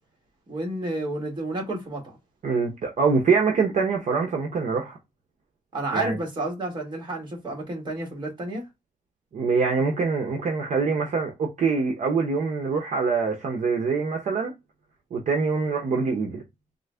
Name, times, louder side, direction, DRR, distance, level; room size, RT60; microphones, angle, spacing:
voice 1, 0.5-2.1 5.7-8.6, right 2 dB, 35° right, 1.5 m, -30 dB
voice 2, 2.4-5.0 5.9-6.2 9.3-14.5 15.1-16.4, right 4 dB, 60° right, 0.6 m, -24 dB
3.8 x 2.1 x 3.2 m
wide cardioid pair, 175°, 14 cm